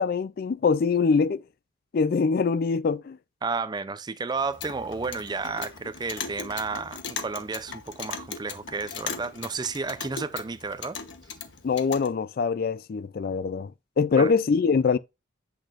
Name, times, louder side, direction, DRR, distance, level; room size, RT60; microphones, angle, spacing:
voice 1, 0.0-1.4 1.9-3.2 11.6-13.7 14.0-15.0, left 5 dB, 50° left, 0.4 m, -23 dB
voice 2, 3.4-11.0 14.2-14.3, right 4 dB, 20° right, 0.4 m, -32 dB
Clock, 4.4-12.1, left 6 dB, 75° left, 1.0 m, -38 dB
8.1 x 6.4 x 2.5 m
head